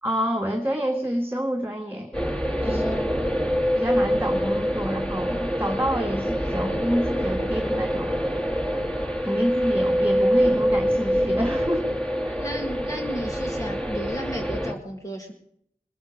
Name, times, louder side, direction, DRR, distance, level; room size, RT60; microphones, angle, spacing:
voice 1, 0.0-2.3 2.6-2.8 3.7-8.2 9.2-11.9 12.3-12.4, equal, 15° right, 1 dB, 1.8 m, -28 dB
sound 1, 2.1-14.7, equal, 5° left, 2.5 m, -25 dB
voice 2, 2.6-3.1 12.4-15.3, equal, 25° left, 1 dB, 1.9 m, -34 dB
20.5 x 8.0 x 6.4 m, 0.69 s
wide cardioid pair, 40°, 14 cm